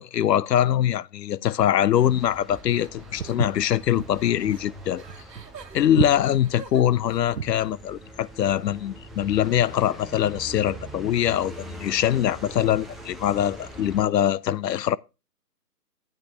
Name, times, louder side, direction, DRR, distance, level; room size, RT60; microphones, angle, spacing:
voice 1, 0.0-5.0 5.7-15.0, left 11 dB, 75° left, 0.5 m, -23 dB
sound 1, 1.9-14.0, right 1 dB, ahead, 0.5 m, -43 dB
sound 2, 2.2-7.2, right 6 dB, 80° right, 1.3 m, -47 dB
Walk footsteps, 3.2-7.7, right 7 dB, 60° right, 0.7 m, -31 dB
9.0 x 8.5 x 3.3 m
hypercardioid pair, 175°, 49 cm